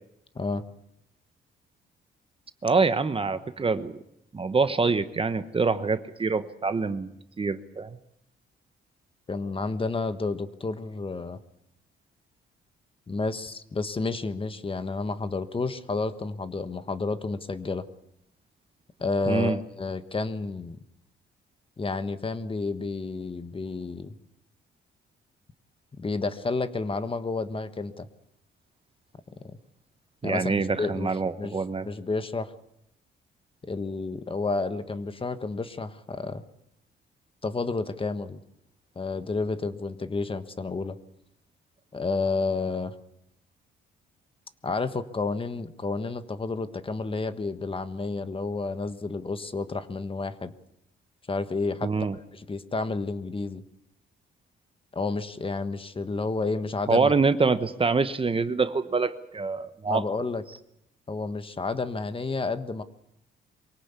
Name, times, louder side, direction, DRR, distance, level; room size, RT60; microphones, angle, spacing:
voice 1, 2.6-3.9 4.3-7.1 7.4-8.0 19.3-19.6 30.2-31.9 51.8-52.2 56.9-60.0, right 4 dB, 25° right, 11 dB, 1.1 m, -25 dB
voice 2, 9.3-11.4 13.1-17.8 19.0-20.8 21.8-24.1 25.9-28.1 29.4-29.6 30.2-31.1 31.4-31.5 31.8-32.5 33.6-36.4 37.4-38.4 38.9-41.0 41.9-42.9 44.6-50.5 51.3-53.6 54.9-57.1 59.9-60.4 61.1-62.8, left 3 dB, 25° left, 11 dB, 1.4 m, -30 dB
24.0 x 17.5 x 8.4 m, 0.79 s
cardioid pair, 90°, 20 cm